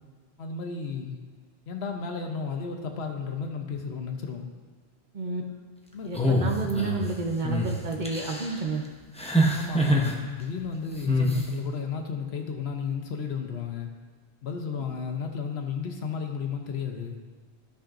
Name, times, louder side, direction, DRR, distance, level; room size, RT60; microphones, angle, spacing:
voice 1, 0.4-1.2 1.7-4.5 5.9-6.4 9.5-13.9 14.4-17.2, left 6 dB, 80° left, 4 dB, 1.1 m, -33 dB
sound 1, 6.1-7.1 7.4-7.7 8.1-8.5 9.2-10.1 11.1-11.4, equal, 5° left, 0.7 m, -24 dB
voice 2, 6.1-8.8, right 3 dB, 50° right, 2 dB, 0.9 m, -30 dB
13.0 x 5.8 x 2.5 m, 1.5 s
omnidirectional pair, 1.1 m